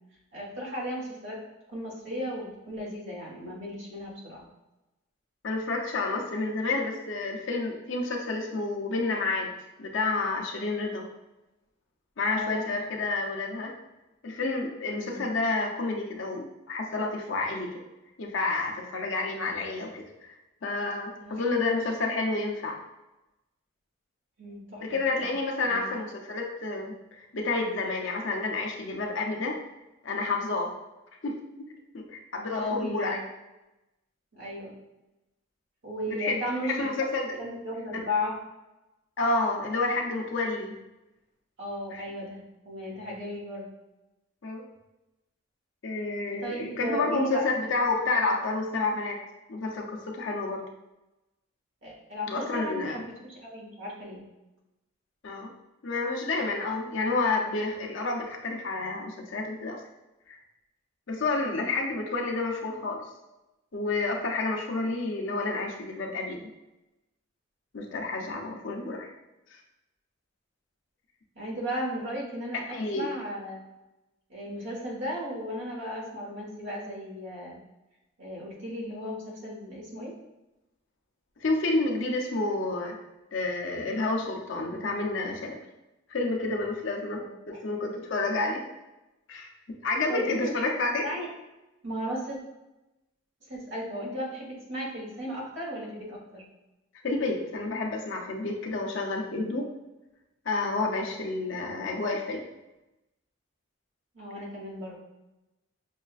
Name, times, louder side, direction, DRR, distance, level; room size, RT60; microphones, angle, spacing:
voice 1, 0.3-1.4 1.7-4.4 12.3-12.7 14.9-15.2 21.2-21.4 24.4-25.3 25.6-25.9 32.5-33.2 34.3-34.7 35.8-36.7 37.4-38.3 41.6-42.4 42.6-43.7 46.4-47.4 51.8-54.2 61.4-61.6 68.6-68.8 71.3-73.6 74.3-77.6 78.2-80.1 87.2-87.8 90.1-90.5 91.0-91.3 91.8-92.4 93.5-96.4 104.1-105.0, equal, 60° right, -3 dB, 1.2 m, -35 dB
voice 2, 5.4-9.5 9.8-11.1 12.2-13.7 14.2-17.7 18.2-22.8 24.8-29.6 30.0-30.7 31.2-31.4 31.9-33.2 36.1-37.4 39.2-40.8 41.9-42.0 44.4-44.6 45.8-49.2 49.5-50.6 52.3-53.0 55.2-55.5 55.8-59.8 60.3-60.4 61.1-63.0 63.7-66.4 67.7-69.1 69.5-69.6 72.7-73.1 81.4-83.0 83.3-85.6 86.1-88.6 89.3-89.5 89.8-91.1 97.0-99.7 100.5-102.4, left 3 dB, 60° left, 1 dB, 0.6 m, -30 dB
6.3 x 2.4 x 2.4 m, 1.0 s
head